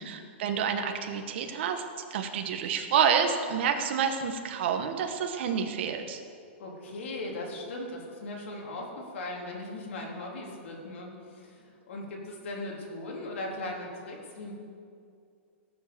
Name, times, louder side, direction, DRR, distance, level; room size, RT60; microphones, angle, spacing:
voice 1, 0.0-1.8 2.1-6.2, right 7 dB, 60° right, 5 dB, 1.4 m, -28 dB
voice 2, 6.6-14.5, left 2 dB, 75° left, -1 dB, 3.7 m, -38 dB
17.5 x 7.6 x 7.1 m, 2.3 s
hypercardioid pair, 145°, 7 cm